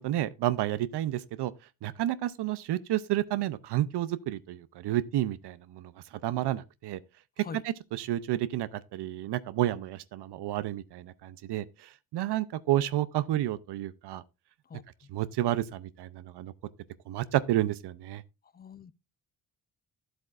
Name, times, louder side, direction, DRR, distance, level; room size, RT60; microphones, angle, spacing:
voice 1, 0.0-1.5 1.8-5.9 6.2-7.0 7.4-14.2 15.1-16.5 17.1-18.2, right 13 dB, 70° right, 0.6 m, -30 dB
voice 2, 18.5-18.9, left 5 dB, 25° left, 0.4 m, -43 dB
12.5 x 7.9 x 2.4 m
cardioid pair, 135°, 41 cm